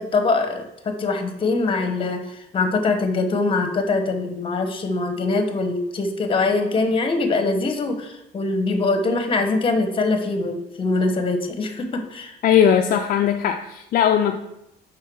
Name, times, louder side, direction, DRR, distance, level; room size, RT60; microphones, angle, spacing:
voice 1, 0.0-12.4, left 3 dB, 30° left, 7 dB, 1.1 m, -23 dB
voice 2, 12.4-14.4, left 9 dB, 55° left, 4 dB, 0.5 m, -18 dB
5.6 x 5.1 x 4.6 m, 0.84 s
cardioid pair, 110°, 17 cm